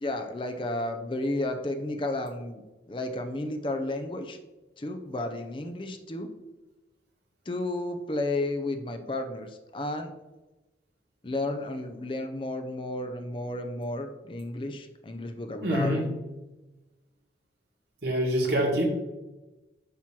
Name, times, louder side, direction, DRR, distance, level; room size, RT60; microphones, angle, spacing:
voice 1, 0.0-2.6 2.9-4.4 4.8-6.3 7.5-10.1 11.2-16.1, left 2 dB, 30° left, 6 dB, 0.5 m, -32 dB
voice 2, 15.6-16.0 18.0-18.9, equal, 70° right, -1 dB, 1.9 m, -25 dB
8.3 x 3.0 x 6.0 m, 1.1 s
head